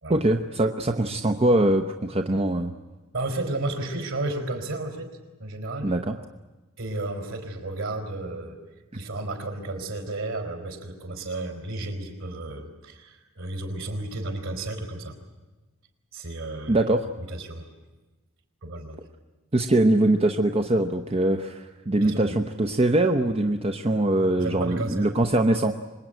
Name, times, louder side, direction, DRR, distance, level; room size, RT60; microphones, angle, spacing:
voice 1, 0.1-2.7 5.8-6.2 16.7-17.1 19.5-25.7, right 1 dB, 25° right, 5 dB, 0.9 m, -22 dB
voice 2, 3.1-5.1 5.4-5.9 6.8-8.6 8.9-15.2 16.1-16.8 17.3-17.7 18.6-19.0 22.0-22.4 24.4-25.1, right 2 dB, 65° right, 4 dB, 4.3 m, -32 dB
25.5 x 21.0 x 9.1 m, 1.2 s
head